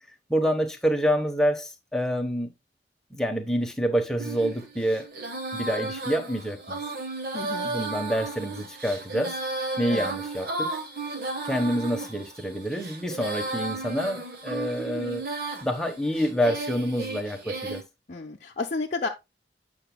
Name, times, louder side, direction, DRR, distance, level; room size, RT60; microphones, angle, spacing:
voice 1, 0.3-2.5 3.1-5.1 5.5-6.8 7.7-9.4 9.8-10.8 11.4-15.2 15.6-17.8, equal, 5° left, 1.0 m, -27 dB
Female singing, 4.2-17.8, right 2 dB, 55° right, 1.3 m, -34 dB
voice 2, 7.3-7.7 9.9-10.1 18.1-19.1, left 3 dB, 40° left, 0.7 m, -31 dB
8.7 x 6.0 x 2.2 m
head